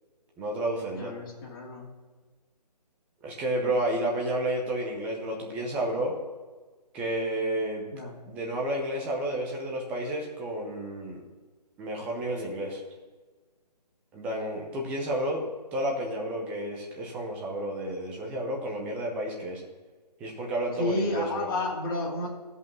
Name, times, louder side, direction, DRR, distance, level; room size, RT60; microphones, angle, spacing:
voice 1, 0.4-1.1 3.2-6.2 6.9-7.9 8.3-11.2 11.8-12.8 14.1-15.4 15.7-19.6 20.2-21.5, right 1 dB, 5° right, 0 dB, 0.6 m, -31 dB
voice 2, 0.9-1.9 7.9-8.1 20.8-22.3, left 2 dB, 35° left, -3 dB, 2.6 m, -31 dB
13.5 x 5.5 x 7.1 m, 1.3 s
hypercardioid pair, 160°, 21 cm